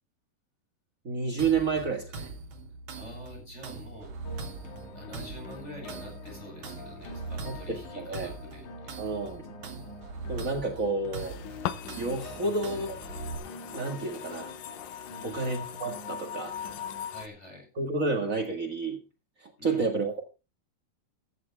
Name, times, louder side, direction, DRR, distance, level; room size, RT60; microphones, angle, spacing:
voice 1, 1.0-2.3 7.4-8.3 9.0-9.5 10.3-11.4 12.0-13.0 13.7-14.5 15.2-16.6 17.8-19.0 19.4-20.2, right 4 dB, 80° right, 3 dB, 0.7 m, -30 dB
sound 1, 1.4-13.4, right 3 dB, 55° right, 3.9 m, -41 dB
voice 2, 2.9-4.1 4.9-9.2 12.4-12.6 15.1-15.4 17.1-17.7 19.6-19.9, equal, 15° left, 0 dB, 8.3 m, -46 dB
sound 2, 4.3-17.1, left 3 dB, 55° left, 3.3 m, -47 dB
sound 3, 11.2-17.3, left 10 dB, 75° left, 2.3 m, -40 dB
15.5 x 13.0 x 3.4 m, 0.30 s
omnidirectional pair, 4.6 m